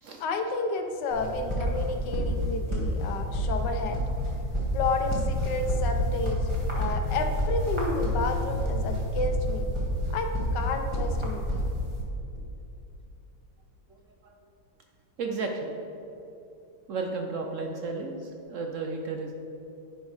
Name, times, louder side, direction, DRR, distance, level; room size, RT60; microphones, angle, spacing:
voice 1, 0.2-4.0 4.7-6.4 6.7-9.6 10.1-11.7, left 3 dB, 70° left, 5 dB, 1.4 m, -31 dB
sound 1, 1.1-12.0, equal, 15° right, 1.8 m, -29 dB
voice 2, 15.2-15.7 16.9-19.3, right 3 dB, 70° right, 3 dB, 0.7 m, -33 dB
10.5 x 5.4 x 4.9 m, 2.8 s
omnidirectional pair, 2.0 m